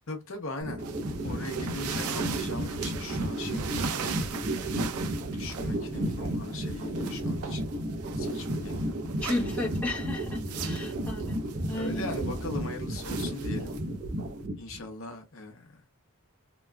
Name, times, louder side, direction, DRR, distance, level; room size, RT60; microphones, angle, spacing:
voice 1, 0.1-0.9 1.2-4.9 5.2-7.7 8.2-9.0 10.5-10.9 11.7-13.8 14.6-15.8, left 2 dB, 60° left, 0.8 m, -40 dB
sound 1, 0.6-14.8, right 1 dB, 40° right, 1.0 m, -33 dB
sound 2, 0.8-14.5, right 8 dB, 85° right, 0.6 m, -41 dB
voice 2, 9.2-12.1, left 1 dB, 5° left, 1.5 m, -34 dB
3.5 x 3.0 x 2.3 m
head